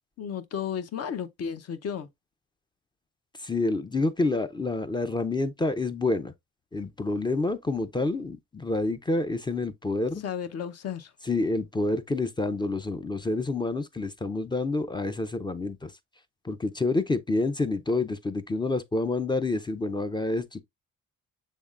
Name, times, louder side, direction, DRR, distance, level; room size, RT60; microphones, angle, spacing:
voice 1, 0.2-2.1 10.2-11.1, left 8 dB, 55° left, 0.7 m, -33 dB
voice 2, 3.4-6.3 6.7-10.2 11.2-15.9 16.4-20.6, left 2 dB, 15° left, 0.4 m, -28 dB
6.4 x 3.5 x 2.3 m
cardioid pair, 90°, 30 cm